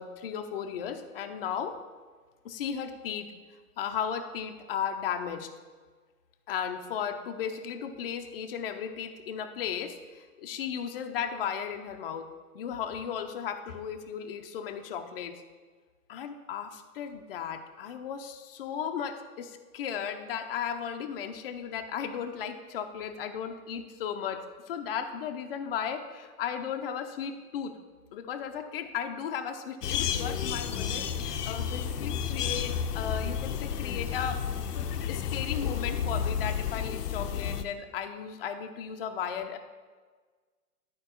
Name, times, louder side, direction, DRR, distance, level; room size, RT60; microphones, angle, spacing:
voice 1, 0.0-1.8 2.4-3.3 3.8-5.5 6.5-15.4 16.1-27.8 28.1-34.4 35.1-39.6, left 8 dB, 40° left, 6 dB, 0.6 m, -35 dB
sound 1, 29.8-37.6, left 8 dB, 90° left, 0.7 m, -31 dB
11.0 x 4.6 x 4.4 m, 1.4 s
hypercardioid pair, 155°, 46 cm